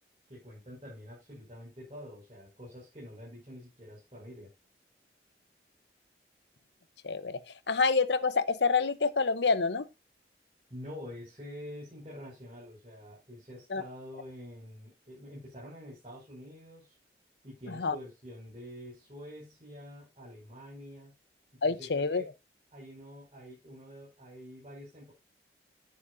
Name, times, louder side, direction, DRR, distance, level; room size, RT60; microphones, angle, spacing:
voice 1, 0.3-4.5 10.7-17.0 17.4-21.1 21.5-22.3 22.7-25.1, equal, 35° right, 5.7 m, -47 dB
voice 2, 7.0-7.4 7.7-9.9 13.7-13.8 17.8-17.9 21.6-22.2, left 4 dB, 80° left, 0.8 m, -27 dB
10.0 x 9.9 x 2.6 m
head